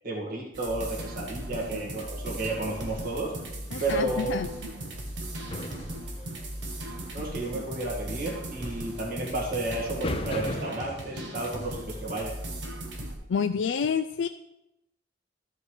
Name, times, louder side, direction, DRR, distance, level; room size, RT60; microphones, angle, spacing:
voice 1, 0.0-3.3 3.8-4.4 7.1-12.3, right 2 dB, 50° right, -3 dB, 1.9 m, -32 dB
sound 1, 0.5-13.2, right 1 dB, 75° right, 1.4 m, -38 dB
sound 2, 1.5-12.5, left 1 dB, 30° left, 0.7 m, -41 dB
voice 2, 3.7-4.5 13.3-14.3, left 6 dB, 85° left, 8 dB, 0.4 m, -28 dB
13.0 x 5.3 x 4.9 m, 0.88 s
head